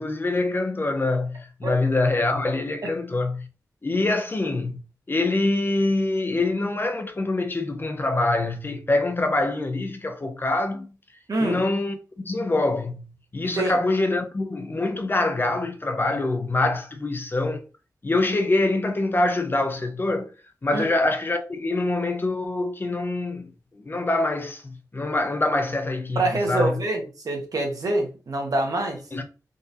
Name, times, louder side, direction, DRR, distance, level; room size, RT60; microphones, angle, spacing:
voice 1, 0.0-3.5 3.8-4.8 5.1-10.9 11.4-12.0 12.2-17.6 18.0-20.3 20.6-26.7 29.1-29.2, left 2 dB, 30° left, 0.5 m, -25 dB
voice 2, 11.3-11.6 13.6-13.8 20.7-20.9 26.1-29.0, right 2 dB, 60° right, 1.1 m, -25 dB
3.8 x 2.5 x 2.7 m
wide cardioid pair, 105°, 7 cm